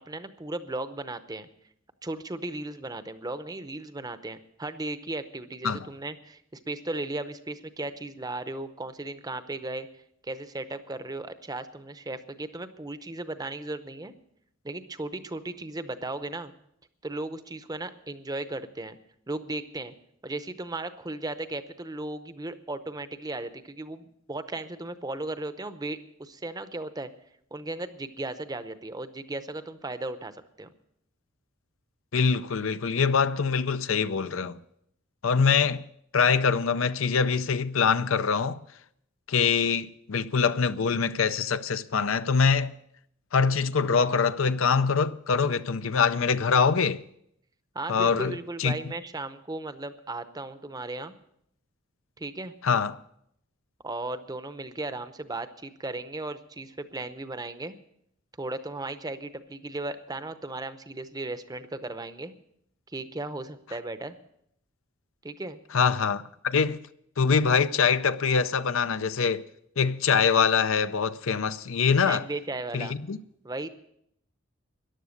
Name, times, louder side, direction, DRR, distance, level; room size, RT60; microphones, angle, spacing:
voice 1, 0.1-1.5 2.0-9.9 10.2-14.1 14.6-16.5 17.0-19.0 19.3-19.9 20.2-27.1 27.5-30.7 47.7-51.1 52.2-52.5 53.8-57.8 58.4-62.3 62.9-64.2 65.2-65.6 72.0-73.0 73.4-73.7, right 2 dB, 20° right, 0.7 m, -36 dB
voice 2, 32.1-34.6 35.2-35.8 36.1-38.6 39.3-42.7 43.3-47.0 47.9-48.8 52.6-53.0 65.7-66.8 67.2-69.5 69.8-72.2 72.7-73.2, left 5 dB, 80° left, 0.6 m, -24 dB
14.0 x 11.0 x 6.5 m
head